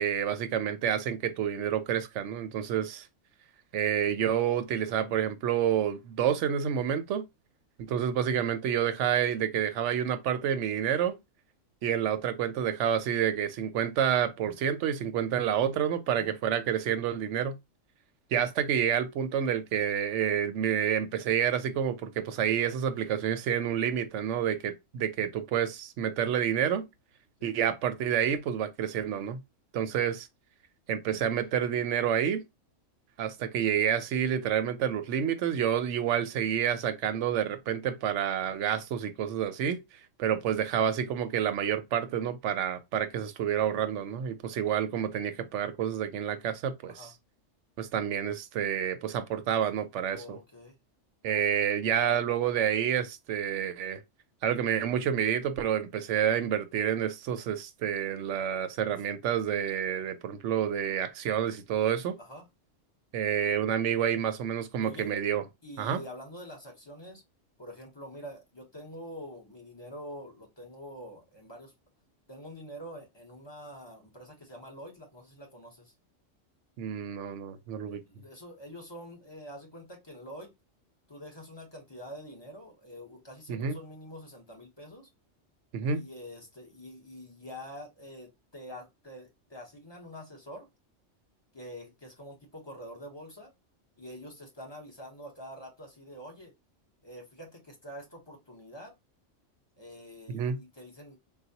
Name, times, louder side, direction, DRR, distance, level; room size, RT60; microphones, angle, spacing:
voice 1, 0.0-3.1 3.7-7.2 7.9-11.2 11.8-17.6 18.3-26.8 27.4-29.4 29.7-30.3 30.9-32.4 33.2-39.8 40.2-47.1 47.8-50.4 51.2-54.0 54.4-62.2 63.1-65.4 65.8-66.0 76.8-78.0 83.5-83.8 85.7-86.0 100.3-100.6, right 9 dB, 75° right, 0.9 m, -29 dB
voice 2, 50.1-50.8 51.3-51.4 62.2-62.5 64.8-65.1 65.6-67.2 67.6-71.7 72.3-75.9 77.9-80.5 81.1-85.1 85.9-90.7 91.5-93.5 94.0-96.5 97.0-98.9 99.8-101.2, equal, 25° left, 1.0 m, -46 dB
4.0 x 2.2 x 2.7 m
omnidirectional pair, 1.3 m